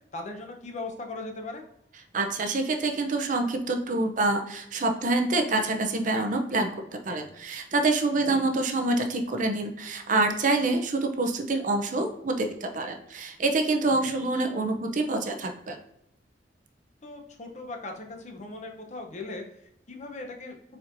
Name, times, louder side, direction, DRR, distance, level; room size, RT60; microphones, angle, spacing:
voice 1, 0.1-1.6 8.3-8.4 13.9-14.2 17.0-19.4 19.9-20.6, left 2 dB, 40° left, 3 dB, 0.7 m, -38 dB
voice 2, 2.1-6.7 7.1-15.8, right 2 dB, 45° right, 5 dB, 0.6 m, -26 dB
4.4 x 4.3 x 2.6 m, 0.78 s
head